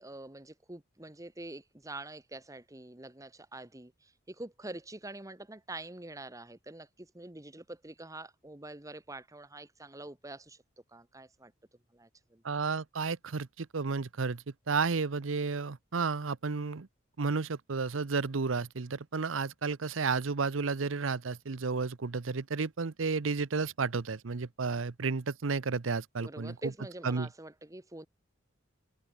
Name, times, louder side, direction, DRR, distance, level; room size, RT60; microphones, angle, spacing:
voice 1, 0.0-10.6 10.9-11.5 11.9-12.4 26.2-28.1, right 2 dB, 15° right, 1.5 m, -45 dB
voice 2, 12.4-16.9 17.2-26.5 27.0-27.3, right 4 dB, 90° right, 0.8 m, -32 dB
head